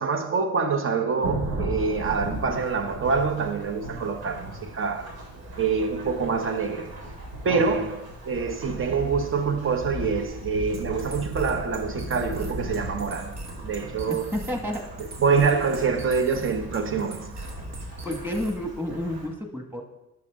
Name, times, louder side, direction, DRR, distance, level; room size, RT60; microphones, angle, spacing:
voice 1, 0.0-5.1 5.6-6.9 7.4-13.4 13.6-14.3 15.2-17.4, right 5 dB, 45° right, 0.9 m, -26 dB
Thunderstorm / Rain, 1.2-19.3, right 1 dB, 80° right, 2.8 m, -37 dB
voice 2, 7.5-7.9 14.1-14.8 18.0-19.8, left 1 dB, 5° right, 1.6 m, -31 dB
sound 1, 10.7-18.7, right 2 dB, 60° right, 1.5 m, -41 dB
10.5 x 6.0 x 3.7 m
cardioid pair, 90°, 30 cm